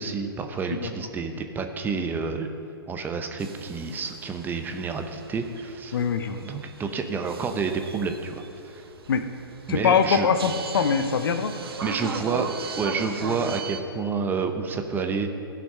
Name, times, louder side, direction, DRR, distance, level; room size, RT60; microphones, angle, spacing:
voice 1, 0.0-2.5 2.9-6.0 6.4-8.4 8.7-8.8 9.7-10.3 11.8-12.5 12.8-15.3, right 5 dB, 15° right, 6 dB, 0.8 m, -29 dB
sound 1, 3.4-13.8, right 5 dB, 75° right, 1.0 m, -37 dB
voice 2, 5.9-6.4 9.1-9.2 9.7-11.5, left 6 dB, 65° left, 9 dB, 0.9 m, -22 dB
16.0 x 6.0 x 5.5 m, 2.8 s
hypercardioid pair, 125°, 13 cm